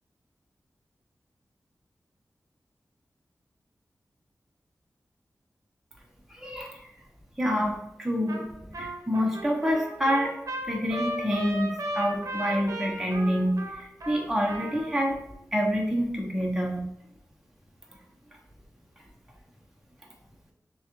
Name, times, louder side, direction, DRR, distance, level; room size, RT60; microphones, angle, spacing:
voice 1, 6.3-6.8 7.4-8.5 8.8-10.3 10.7-15.2 15.5-16.9, equal, 5° right, -1 dB, 0.8 m, -27 dB
Trumpet, 8.3-8.5 8.7-15.0, right 1 dB, 65° right, 0.8 m, -35 dB
6.1 x 2.3 x 3.0 m, 0.84 s
cardioid pair, 50°, 6 cm